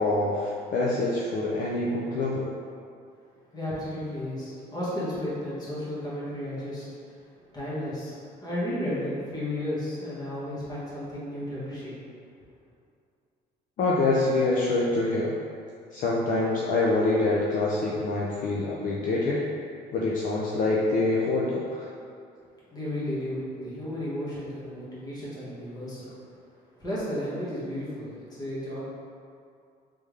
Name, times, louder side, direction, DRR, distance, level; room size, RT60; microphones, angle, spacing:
voice 1, 0.0-2.5 13.8-15.3 15.9-19.4 19.9-21.9, left 2 dB, 50° left, -5 dB, 0.5 m, -25 dB
voice 2, 3.5-6.9 7.5-12.0 22.7-26.1 26.8-28.8, left 1 dB, 25° left, -9 dB, 1.5 m, -33 dB
3.4 x 3.4 x 3.2 m, 2.4 s
cardioid pair, 110°, 17 cm